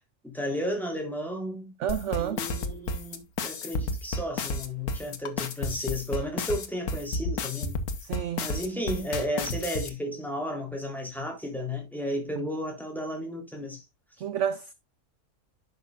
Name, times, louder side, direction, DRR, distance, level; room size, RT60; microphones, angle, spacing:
voice 1, 0.2-1.7 2.2-7.8 8.4-13.8, equal, ahead, 3.4 m, -33 dB
voice 2, 1.8-2.4 8.0-8.5 14.2-14.7, right 9 dB, 65° right, 0.8 m, -30 dB
sound 1, 1.9-9.9, left 2 dB, 70° left, 1.6 m, -31 dB
10.5 x 6.7 x 2.4 m
omnidirectional pair, 1.7 m